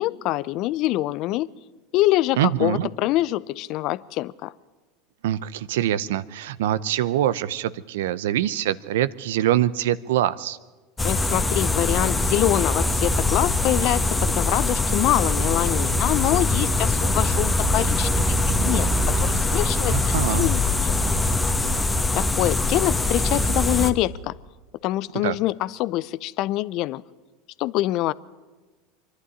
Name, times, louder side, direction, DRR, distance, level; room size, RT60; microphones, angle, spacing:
voice 1, 0.0-1.5 1.9-4.5 11.0-18.9 19.2-21.2 22.1-24.3 24.8-27.0 27.6-28.1, left 16 dB, 55° left, 19 dB, 0.6 m, -25 dB
voice 2, 2.4-2.9 5.2-10.6 19.9-20.5 25.2-25.4, right 12 dB, 75° right, 17 dB, 0.7 m, -24 dB
sound 1, 11.0-23.9, left 2 dB, 15° left, 1.5 m, -22 dB
25.0 x 11.5 x 9.7 m, 1.3 s
hypercardioid pair, 90°, 0 cm